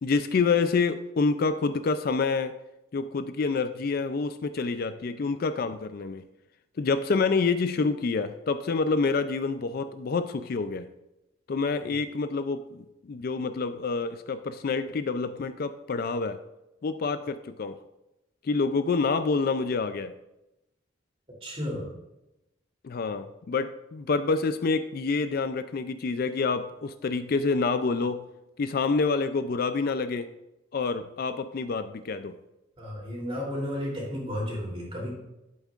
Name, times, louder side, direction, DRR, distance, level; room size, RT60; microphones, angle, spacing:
voice 1, 0.0-2.5 2.9-6.3 6.8-10.9 11.5-16.4 16.8-17.8 18.4-20.1 22.8-28.2 28.6-30.3 30.7-32.4, left 4 dB, 45° left, 10 dB, 0.4 m, -27 dB
voice 2, 21.4-21.9 32.8-35.1, left 1 dB, 30° right, -2 dB, 3.0 m, -33 dB
11.5 x 8.1 x 2.4 m, 0.93 s
head